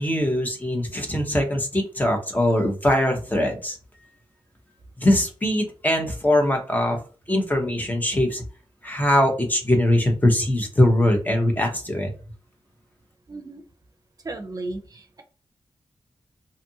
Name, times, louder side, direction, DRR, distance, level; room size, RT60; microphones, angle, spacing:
voice 1, 0.0-3.8 5.0-7.0 7.3-8.4 8.8-12.1, left 1 dB, 20° left, 3 dB, 0.8 m, -21 dB
voice 2, 13.3-13.6 14.2-15.2, right 2 dB, 40° right, 4 dB, 0.5 m, -34 dB
2.6 x 2.5 x 2.7 m, 0.37 s
wide cardioid pair, 95°, 10 cm